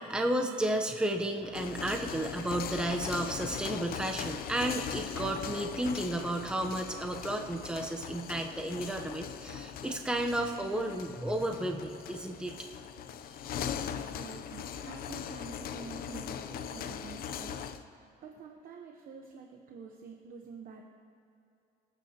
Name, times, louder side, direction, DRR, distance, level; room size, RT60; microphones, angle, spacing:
voice 1, 0.0-12.7, right 1 dB, 5° right, 3 dB, 0.8 m, -33 dB
sound 1, 1.4-17.8, left 9 dB, 60° left, 0.7 m, -40 dB
voice 2, 13.2-17.6 17.9-20.8, right 5 dB, 55° right, 2 dB, 1.0 m, -48 dB
26.5 x 9.0 x 2.9 m, 2.6 s
cardioid pair, 110°, 17 cm